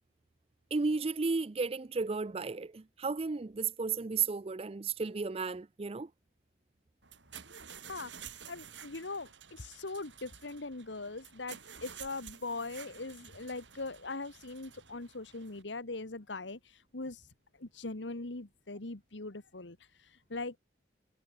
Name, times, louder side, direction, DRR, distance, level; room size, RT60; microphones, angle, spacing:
voice 1, 0.7-6.1, right 4 dB, 30° right, 0.5 m, -33 dB
sound 1, 7.0-15.6, right 8 dB, 90° right, 7.0 m, -51 dB
voice 2, 7.9-17.3 17.6-20.6, left 3 dB, 85° left, 1.6 m, -41 dB
head